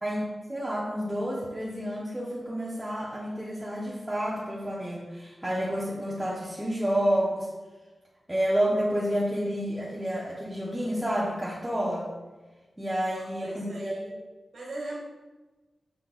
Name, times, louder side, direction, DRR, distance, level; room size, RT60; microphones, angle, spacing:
voice 1, 0.0-7.5 8.3-12.1 12.8-13.9, equal, 10° right, -6 dB, 0.8 m, -29 dB
voice 2, 13.1-14.1 14.5-15.0, right 2 dB, 80° right, -4 dB, 1.6 m, -39 dB
6.9 x 5.9 x 2.3 m, 1.2 s
wide cardioid pair, 155°, 0 cm